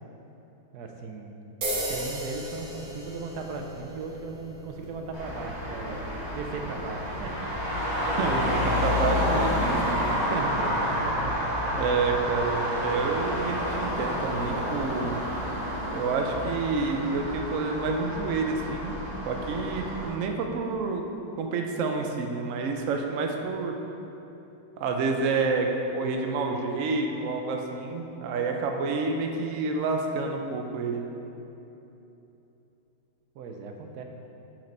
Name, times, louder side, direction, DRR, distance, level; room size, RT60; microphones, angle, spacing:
voice 1, 0.7-1.4 1.9-7.4 8.3-9.0 10.4-11.5 33.3-34.0, right 4 dB, 70° right, 3 dB, 1.0 m, -38 dB
sound 1, 1.6-9.7, right 1 dB, 45° right, 1.5 m, -38 dB
Traffic noise roadway noise, 5.1-20.1, equal, 20° left, 1.6 m, -29 dB
voice 2, 8.2-10.5 10.8-10.9 11.7-15.2 15.9-19.0 19.3-21.0 21.4-23.8 24.8-31.0, right 4 dB, 85° right, 3 dB, 0.7 m, -29 dB
7.6 x 4.6 x 5.3 m, 3.0 s
omnidirectional pair, 2.1 m